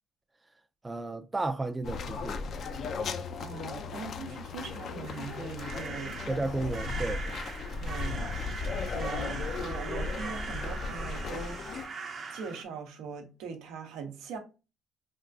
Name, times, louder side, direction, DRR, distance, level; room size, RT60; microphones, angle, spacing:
voice 1, 0.8-2.5 6.3-7.3, right 2 dB, 15° right, 0.4 m, -33 dB
sound 1, 1.8-11.9, left 4 dB, 55° left, 0.4 m, -36 dB
voice 2, 3.4-6.2 7.8-8.3 8.9-11.6 12.3-14.4, right 6 dB, 85° right, 0.7 m, -41 dB
sound 2, 5.0-12.6, right 4 dB, 50° right, 0.7 m, -41 dB
3.5 x 2.3 x 2.6 m
cardioid pair, 95°, 0 cm